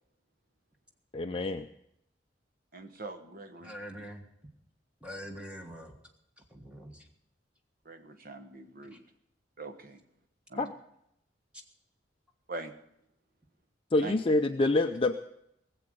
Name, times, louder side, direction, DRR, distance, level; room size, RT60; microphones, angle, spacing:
voice 1, 1.1-1.7 10.6-10.7 13.9-15.1, left 2 dB, 30° left, 6 dB, 0.5 m, -26 dB
voice 2, 2.7-3.7 7.8-9.0 9.6-10.0 10.5-10.7 12.5-12.8 14.0-14.2, right 2 dB, 50° right, 8 dB, 1.2 m, -42 dB
voice 3, 3.6-4.2 5.0-5.9 6.4-7.1 8.9-9.0, equal, 5° right, 2 dB, 1.5 m, -44 dB
19.0 x 7.8 x 7.8 m, 0.79 s
head